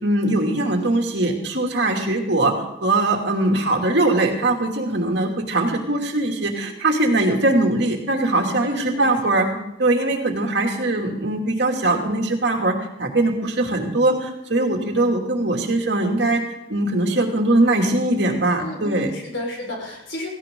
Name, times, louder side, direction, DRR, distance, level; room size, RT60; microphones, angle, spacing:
voice 1, 0.0-2.5 2.8-9.5 9.8-16.4 16.7-19.1, right 2 dB, 65° right, 1 dB, 2.7 m, -21 dB
voice 2, 8.6-9.1 9.5-9.7 18.6-20.3, left 1 dB, 75° left, 0 dB, 5.1 m, -32 dB
17.0 x 16.0 x 3.9 m, 0.86 s
head